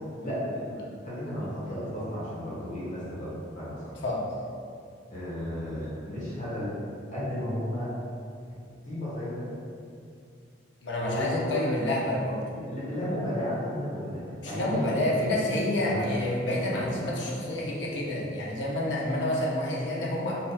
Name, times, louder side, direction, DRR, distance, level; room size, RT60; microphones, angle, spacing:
voice 1, 0.2-3.9 5.1-6.8 7.1-7.9 8.8-9.5 11.0-11.7 12.5-15.4 15.9-16.0 16.7-16.9, equal, 45° left, -9 dB, 1.2 m, -33 dB
voice 2, 10.8-12.4 14.4-20.4, left 1 dB, 75° left, -4 dB, 0.7 m, -28 dB
4.0 x 3.6 x 2.2 m, 2.4 s
head